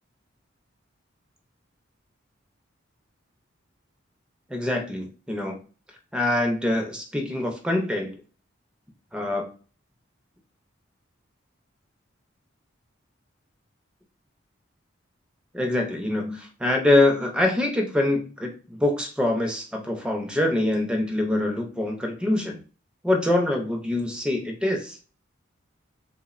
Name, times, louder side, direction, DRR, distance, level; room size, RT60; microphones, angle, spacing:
voice 1, 4.5-5.6 6.1-8.1 9.1-9.5 15.5-22.6 23.0-25.0, left 1 dB, 5° right, 2 dB, 0.4 m, -24 dB
3.2 x 2.0 x 2.3 m, 0.38 s
head